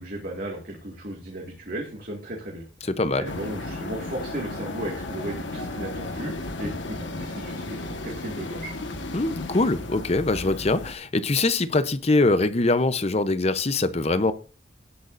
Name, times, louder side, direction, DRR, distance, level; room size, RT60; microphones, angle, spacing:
voice 1, 0.0-2.6 3.2-8.7, right 1 dB, 50° right, 2.0 m, -35 dB
voice 2, 2.9-3.3 9.1-14.3, left 2 dB, 35° left, 0.7 m, -23 dB
sound 1, 3.2-10.9, left 2 dB, 80° left, 1.4 m, -34 dB
17.5 x 8.2 x 2.6 m
head